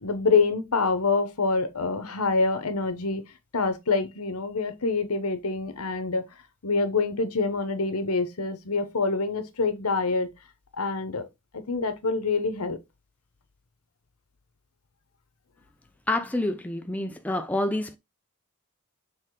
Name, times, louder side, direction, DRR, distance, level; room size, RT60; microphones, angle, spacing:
voice 1, 0.0-3.2 3.5-6.2 6.6-10.3 10.8-11.3 11.5-12.8, left 4 dB, 85° left, 1.1 m, -26 dB
voice 2, 16.1-18.0, left 1 dB, 5° left, 0.5 m, -28 dB
6.6 x 3.7 x 3.8 m
head